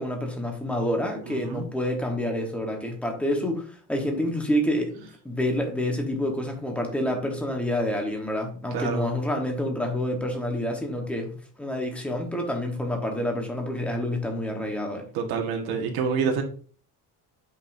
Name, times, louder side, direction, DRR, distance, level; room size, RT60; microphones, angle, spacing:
voice 1, 0.0-15.0, left 1 dB, 5° left, 2 dB, 1.2 m, -28 dB
voice 2, 1.3-1.7 8.7-9.1 15.1-16.4, right 6 dB, 65° right, 3 dB, 1.6 m, -27 dB
8.0 x 5.6 x 2.7 m, 0.43 s
cardioid pair, 175°, 40 cm